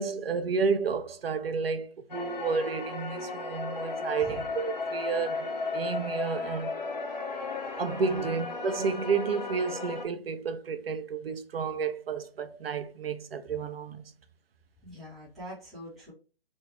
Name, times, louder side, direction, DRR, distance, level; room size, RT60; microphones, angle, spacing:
voice 1, 0.0-6.7 7.8-14.1, right 5 dB, 80° right, 0.6 m, -31 dB
sound 1, 2.1-10.0, left 3 dB, 45° left, 0.8 m, -35 dB
voice 2, 14.8-16.1, left 1 dB, ahead, 0.4 m, -43 dB
3.0 x 2.7 x 3.1 m
hypercardioid pair, 175°, 29 cm